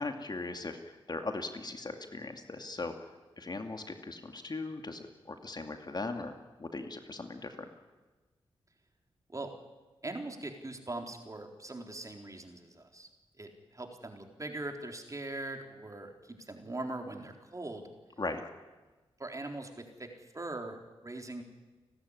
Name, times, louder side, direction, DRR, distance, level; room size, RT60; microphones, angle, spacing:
voice 1, 0.0-2.9 3.4-7.6 18.2-18.4, left 3 dB, 40° left, 5 dB, 2.3 m, -39 dB
voice 2, 10.0-13.1 13.4-17.9 19.2-20.1 20.3-21.4, right 2 dB, 30° right, 3 dB, 4.0 m, -41 dB
30.0 x 13.0 x 10.0 m, 1.3 s
cardioid pair, 50°, 10 cm